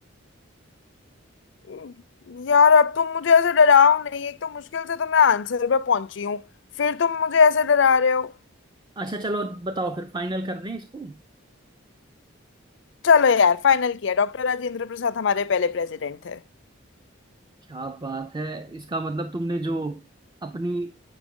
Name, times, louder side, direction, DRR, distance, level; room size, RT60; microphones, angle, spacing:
voice 1, 2.3-6.4 6.8-8.3 13.0-16.4, left 6 dB, 60° left, 0.4 m, -20 dB
voice 2, 9.0-11.2 17.7-20.0 20.4-21.0, right 2 dB, 20° right, 0.4 m, -30 dB
8.3 x 6.1 x 3.6 m
head